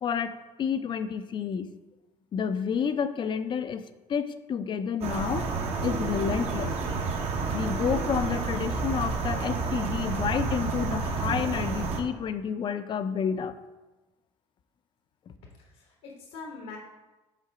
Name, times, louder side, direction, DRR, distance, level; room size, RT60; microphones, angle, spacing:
voice 1, 0.0-1.7 2.3-5.5 5.8-6.8 7.5-13.6, left 7 dB, 40° left, 12 dB, 0.5 m, -30 dB
sound 1, 5.0-12.0, right 4 dB, 60° right, 1.1 m, -30 dB
voice 2, 15.6-16.8, left 4 dB, 80° left, -1 dB, 1.2 m, -43 dB
5.7 x 3.8 x 6.0 m, 1.1 s
cardioid pair, 100°, 12 cm